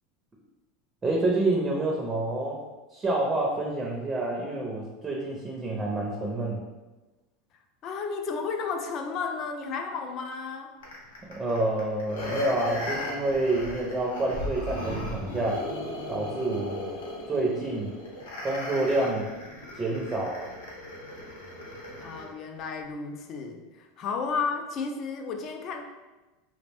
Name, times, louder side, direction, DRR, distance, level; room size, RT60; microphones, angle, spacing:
voice 1, 1.0-2.6 2.9-6.6 11.3-15.6 16.1-16.9 17.3-17.9 18.4-19.3 19.7-20.5, right 2 dB, 20° right, -2 dB, 0.5 m, -28 dB
voice 2, 7.8-10.7 22.0-25.8, left 5 dB, 45° left, 4 dB, 0.4 m, -33 dB
sound 1, 10.8-22.3 22.7-22.8, left 1 dB, 90° left, 0.7 m, -36 dB
2.4 x 2.0 x 3.3 m, 1.2 s
hypercardioid pair, 100°, 0 cm